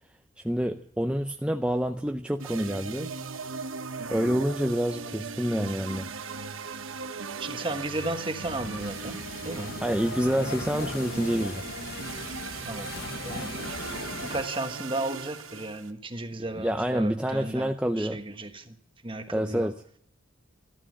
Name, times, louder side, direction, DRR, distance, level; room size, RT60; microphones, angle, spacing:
voice 1, 0.4-3.1 4.1-6.1 9.8-11.6 16.5-18.2 19.3-19.7, equal, 5° right, 0.6 m, -27 dB
sound 1, 2.4-15.9, right 4 dB, 80° right, 1.1 m, -38 dB
voice 2, 7.4-9.2 9.4-9.8 12.7-12.9 13.2-13.6 14.2-18.8 19.0-19.7, right 2 dB, 25° right, 1.3 m, -34 dB
sound 2, 8.4-14.4, left 4 dB, 50° left, 0.8 m, -39 dB
14.0 x 12.5 x 7.6 m
head